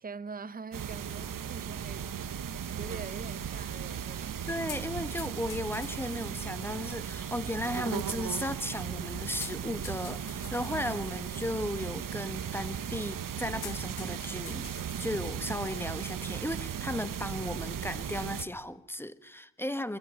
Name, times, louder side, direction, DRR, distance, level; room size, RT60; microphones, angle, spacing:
voice 1, 0.0-4.5, right 5 dB, 20° right, 0.8 m, -44 dB
sound 1, 0.7-18.4, right 8 dB, 40° right, 1.5 m, -37 dB
sound 2, 1.2-18.7, left 11 dB, 50° left, 1.2 m, -53 dB
voice 2, 4.5-20.0, left 1 dB, 5° left, 1.1 m, -35 dB
23.0 x 15.0 x 9.2 m
supercardioid pair, 75°, 49 cm